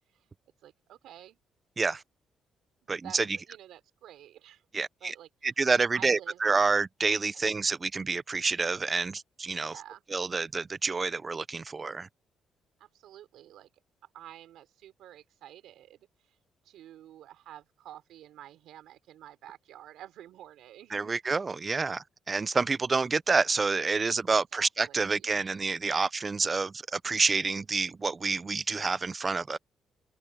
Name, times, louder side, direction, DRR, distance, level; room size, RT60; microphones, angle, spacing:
voice 1, 0.6-1.4 2.8-4.6 5.0-5.3 5.9-6.4 9.6-10.0 12.8-13.7 14.1-16.1 16.6-21.2 24.5-25.3, right 12 dB, 80° right, 4.2 m, -50 dB
voice 2, 2.9-3.4 4.7-5.1 5.4-9.7 10.1-12.1 20.9-29.6, right 4 dB, 30° right, 0.6 m, -28 dB
cardioid pair, 90°, 0 cm